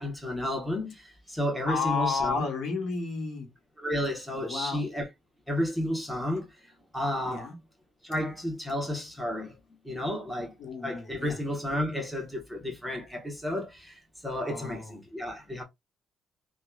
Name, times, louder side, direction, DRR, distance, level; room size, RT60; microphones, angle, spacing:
voice 1, 0.0-2.4 3.8-5.1 5.5-7.5 8.0-9.5 9.8-10.6 10.8-15.6, left 1 dB, ahead, 1.1 m, -32 dB
voice 2, 1.7-3.5 4.3-4.8 7.2-7.6 10.6-11.4 14.4-15.0, left 4 dB, 70° left, 1.1 m, -32 dB
2.9 x 2.3 x 2.2 m
cardioid pair, 90°, 0 cm